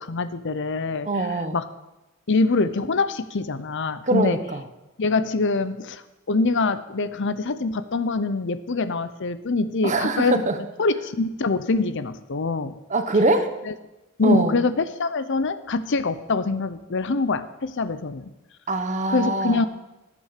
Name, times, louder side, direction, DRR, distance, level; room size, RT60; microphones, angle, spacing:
voice 1, 0.0-1.6 2.3-4.4 5.0-6.0 6.3-10.4 10.8-12.7 13.7-13.8 14.2-18.3 19.1-19.7, left 3 dB, 60° left, 12 dB, 0.7 m, -24 dB
voice 2, 1.1-1.6 4.0-4.6 9.8-10.6 12.9-13.5 14.2-14.5 18.7-19.7, right 2 dB, 35° right, 8 dB, 1.1 m, -23 dB
14.5 x 8.5 x 6.7 m, 1.0 s
head